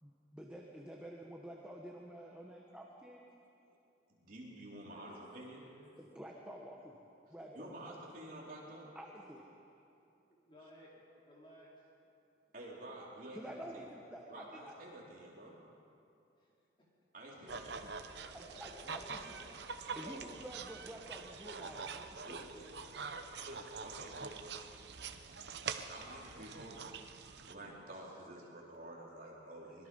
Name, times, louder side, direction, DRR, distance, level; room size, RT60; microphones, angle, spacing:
voice 1, 0.0-3.3 6.0-7.0 7.3-7.9 8.9-9.5 13.3-14.7 18.6-19.2 19.9-22.5, right 1 dB, 5° right, -1 dB, 1.4 m, -49 dB
voice 2, 4.1-5.6 7.3-8.9 12.5-13.9 14.3-15.6 17.1-17.9 20.0-20.2 22.2-22.6 23.4-24.8 25.8-26.9 27.4-29.9, right 1 dB, 45° right, -4 dB, 4.0 m, -50 dB
voice 3, 4.9-5.3 5.6-6.0 6.2-6.4 7.3-7.4 10.3-11.9 16.4-16.9 18.1-19.6 22.5-23.3, equal, 25° left, -5 dB, 4.6 m, -58 dB
sound 1, 17.5-27.5, right 5 dB, 65° right, 0.9 m, -45 dB
24.5 x 22.0 x 5.5 m, 2.7 s
head